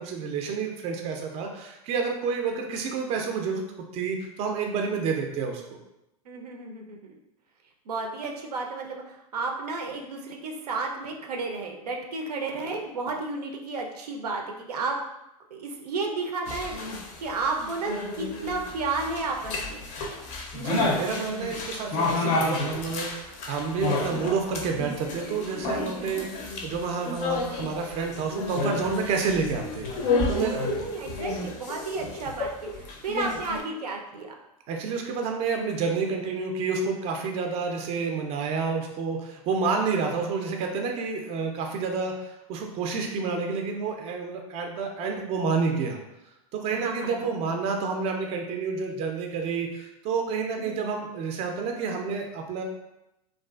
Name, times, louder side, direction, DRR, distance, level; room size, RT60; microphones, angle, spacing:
voice 1, 0.0-3.6 3.9-5.8 20.5-30.7 34.7-46.0 46.5-52.6, right 5 dB, 30° right, 2 dB, 0.4 m, -29 dB
voice 2, 6.3-7.2 7.9-15.0 15.5-19.8 30.3-34.3 46.7-47.3 50.6-50.8, right 3 dB, 85° right, 2 dB, 0.5 m, -32 dB
sound 1, 16.5-33.6, left 3 dB, 40° left, 0.5 m, -31 dB
2.4 x 2.4 x 2.3 m, 0.89 s
hypercardioid pair, 110°, 20 cm